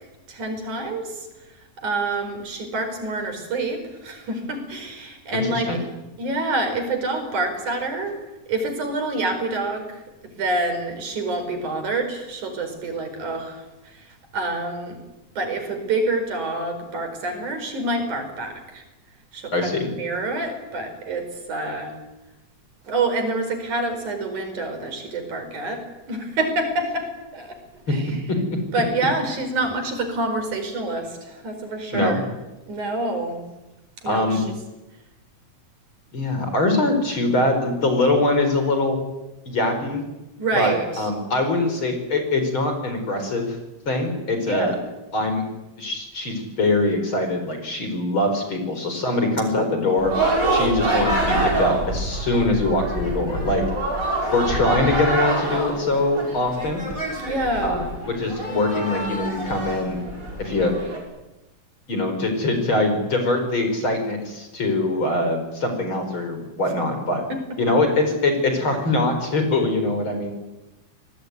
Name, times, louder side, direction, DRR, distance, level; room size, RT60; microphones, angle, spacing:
voice 1, 0.3-1.3 1.8-5.7 6.2-8.2 8.5-15.0 15.4-18.8 19.3-19.7 20.0-21.9 22.8-27.6 27.9-28.2 28.7-32.3 32.7-33.4 34.0-34.5 40.4-41.1 44.4-44.8 49.7-50.0 57.2-57.9 67.3-67.4 67.7-67.8, right 2 dB, 85° right, 6 dB, 6.1 m, -27 dB
voice 2, 5.3-5.8 19.5-19.9 27.9-28.0 28.3-28.6 31.9-32.2 34.0-34.4 36.1-39.0 39.4-40.0 40.5-43.6 43.9-44.8 45.1-45.4 45.8-50.1 50.5-53.6 54.3-56.8 57.6-60.0 60.4-60.7 61.9-67.2 67.6-70.3, left 2 dB, 40° left, 6 dB, 5.1 m, -23 dB
sound 1, 50.0-61.0, right 2 dB, 25° right, 6.3 m, -26 dB
27.5 x 18.5 x 9.5 m, 1.0 s
omnidirectional pair, 3.4 m